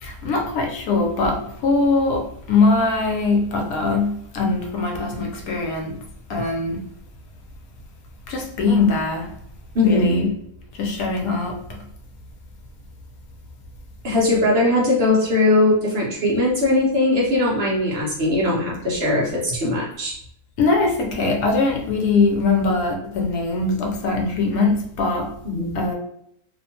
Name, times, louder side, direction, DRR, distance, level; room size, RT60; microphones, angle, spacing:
voice 1, 0.0-5.9 6.3-6.8 8.3-9.3 9.8-10.3 10.7-11.8 20.6-25.3 25.7-25.9, left 3 dB, 80° left, 1 dB, 1.1 m, -21 dB
voice 2, 9.7-10.3 14.0-20.1 25.4-25.8, left 2 dB, 55° right, -3 dB, 0.9 m, -20 dB
2.8 x 2.1 x 2.8 m, 0.71 s
omnidirectional pair, 1.5 m